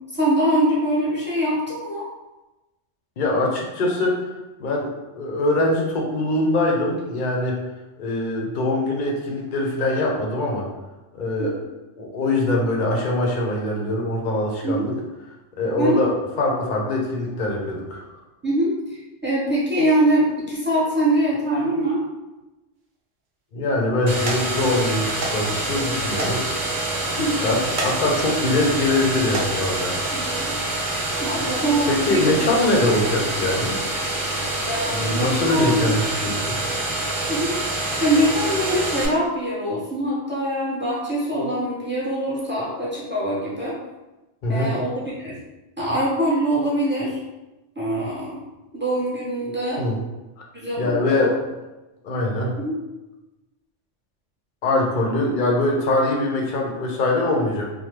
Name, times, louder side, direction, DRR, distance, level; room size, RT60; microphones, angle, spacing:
voice 1, 0.1-2.1 11.4-11.5 14.6-15.0 15.8-16.1 18.4-22.0 27.2-27.4 30.1-30.5 31.1-32.3 34.6-35.9 37.3-37.6 38.0-43.8 44.5-45.4 45.8-47.2 47.8-48.4 48.7-49.8 50.5-51.3 52.6-52.8, right 1 dB, 15° right, -7 dB, 0.5 m, -23 dB
voice 2, 3.2-4.3 4.6-7.6 8.0-10.7 11.1-11.5 12.0-14.9 15.6-18.1 23.5-26.4 27.2-30.2 31.9-33.7 35.0-36.6 44.4-44.7 49.8-50.0 50.8-51.4 52.0-52.5 54.6-57.8, left 2 dB, 55° left, -1 dB, 0.6 m, -23 dB
sound 1, 22.8-23.3 23.8-24.0 24.3-24.4 25.2-25.4 25.7-25.8 26.2-26.4 26.8-26.9 27.6-27.9 28.4-28.7 29.2-29.5 30.4-30.6 31.1-31.2, right 2 dB, 55° right, 0.6 m, -29 dB
sound 2, 24.1-39.1, right 2 dB, 85° right, 1.1 m, -26 dB
3.0 x 2.0 x 3.1 m, 1.1 s
omnidirectional pair, 1.3 m